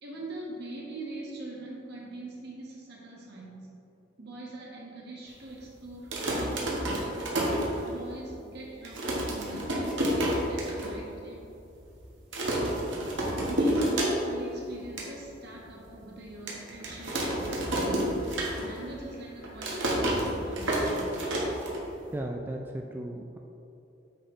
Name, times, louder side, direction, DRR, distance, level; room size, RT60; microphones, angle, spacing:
voice 1, 0.0-3.7 4.2-7.5 7.9-11.5 12.4-12.9 13.4-18.3 18.6-21.3, right 2 dB, 60° right, -3 dB, 1.6 m, -42 dB
sound 1, 5.9-8.2 8.6-8.7 8.8-10.9 11.3-11.4 11.6-11.9 12.3-14.5 14.8-15.1 15.6-15.7 16.5-18.9 19.2-22.1, right 1 dB, 85° right, 1.5 m, -29 dB
sound 2, 16.9-20.3, left 1 dB, 50° left, 0.9 m, -46 dB
voice 2, 22.1-23.4, right 1 dB, 10° right, 1 dB, 0.3 m, -36 dB
9.2 x 4.3 x 3.8 m, 2.9 s
head